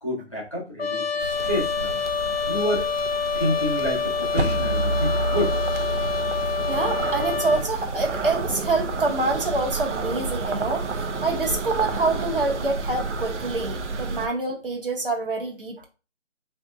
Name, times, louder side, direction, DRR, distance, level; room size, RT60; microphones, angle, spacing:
voice 1, 0.0-1.9 2.5-2.9 3.3-5.5, left 1 dB, 25° left, -5 dB, 1.0 m, -28 dB
Trumpet, 0.8-7.7, left 5 dB, 55° left, 0.5 m, -27 dB
sound 1, 1.2-14.3, right 3 dB, 75° right, 0.6 m, -31 dB
sound 2, 4.4-9.5, right 1 dB, 90° left, 1.0 m, -30 dB
voice 2, 6.7-15.9, right 3 dB, 50° right, 1 dB, 0.9 m, -26 dB
3.4 x 2.7 x 2.4 m, 0.31 s
figure-of-eight pair, 175°, 36 cm